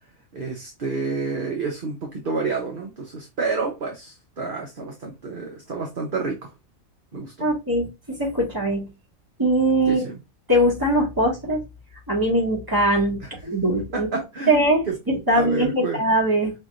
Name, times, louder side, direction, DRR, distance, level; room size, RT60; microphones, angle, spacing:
voice 1, 0.3-6.5 7.1-7.5 9.9-10.2 13.2-13.3 13.9-15.0 15.3-16.0, right 4 dB, 45° right, 1.0 m, -29 dB
voice 2, 7.4-8.9 9.4-10.1 10.5-11.6 12.1-14.1 14.5-16.5, right 1 dB, 15° right, 2.0 m, -21 dB
5.5 x 3.0 x 2.5 m
omnidirectional pair, 1.4 m